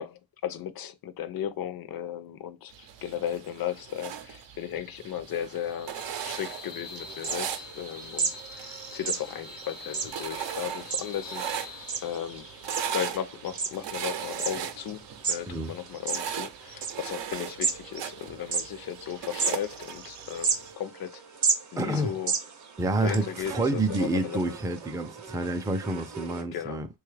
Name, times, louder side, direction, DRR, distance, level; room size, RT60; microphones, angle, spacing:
voice 1, 0.0-5.9 6.2-12.5 12.9-21.2 21.7-22.3 23.0-24.4 26.4-26.8, left 10 dB, 55° left, 0.5 m, -36 dB
sound 1, 2.7-20.7, right 8 dB, 90° right, 0.6 m, -39 dB
sound 2, 3.9-16.5, left 4 dB, 80° left, 1.0 m, -47 dB
sound 3, 6.9-26.4, right 5 dB, 45° right, 0.7 m, -35 dB
voice 2, 21.8-22.1 22.8-26.9, right 2 dB, 10° right, 0.3 m, -28 dB
3.3 x 2.3 x 3.2 m
wide cardioid pair, 145°, 42 cm